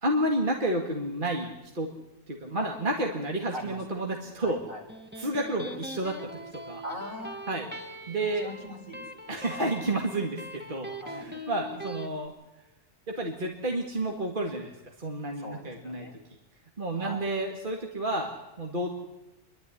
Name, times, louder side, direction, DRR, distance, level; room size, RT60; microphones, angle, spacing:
voice 1, 0.0-1.9 2.3-4.6 5.2-6.8 7.5-7.7 8.1-8.5 9.3-12.3 13.1-14.7 15.0-16.1 16.8-18.9, right 1 dB, 35° right, 1 dB, 2.1 m, -30 dB
voice 2, 4.4-4.8 6.8-7.4 8.4-9.0 9.5-9.8 11.0-11.3 15.4-16.1 16.9-17.3, equal, 55° right, 0 dB, 4.8 m, -40 dB
Electric guitar, 4.7-12.1, equal, 5° right, 1.3 m, -42 dB
27.0 x 12.0 x 9.8 m, 0.98 s
omnidirectional pair, 1.6 m